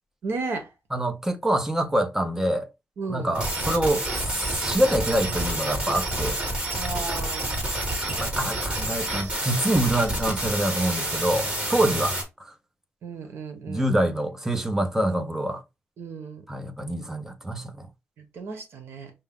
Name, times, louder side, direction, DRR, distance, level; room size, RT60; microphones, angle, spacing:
voice 1, 0.2-0.7 3.0-3.3 6.8-7.6 11.8-12.0 13.0-13.9 16.0-16.4 18.2-19.1, right 4 dB, 70° right, 1.1 m, -34 dB
voice 2, 0.9-2.7 3.1-6.4 8.1-12.5 13.6-15.6 16.5-17.9, right 1 dB, 10° right, 0.7 m, -26 dB
sound 1, 3.3-12.2, right 1 dB, 30° right, 2.0 m, -28 dB
5.4 x 2.3 x 3.7 m
wide cardioid pair, 140°, 4 cm